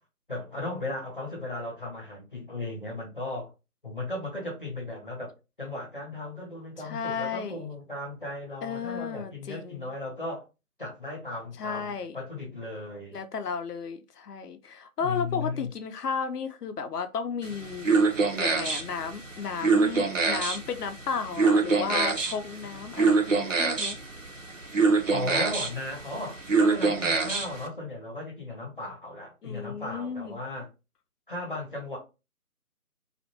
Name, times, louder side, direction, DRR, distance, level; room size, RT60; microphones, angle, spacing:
voice 1, 0.3-3.5 3.8-5.3 5.6-10.4 10.8-13.2 15.0-15.7 25.1-30.7 31.3-32.0, left 2 dB, 35° left, 0.9 m, -36 dB
voice 2, 6.8-7.6 8.6-9.9 11.6-12.2 13.1-17.9 18.4-24.0 29.4-30.4, left 6 dB, 90° left, 0.6 m, -34 dB
sound 1, 17.4-27.7, right 4 dB, 55° right, 0.5 m, -26 dB
2.4 x 2.1 x 2.9 m
figure-of-eight pair, 175°, 45 cm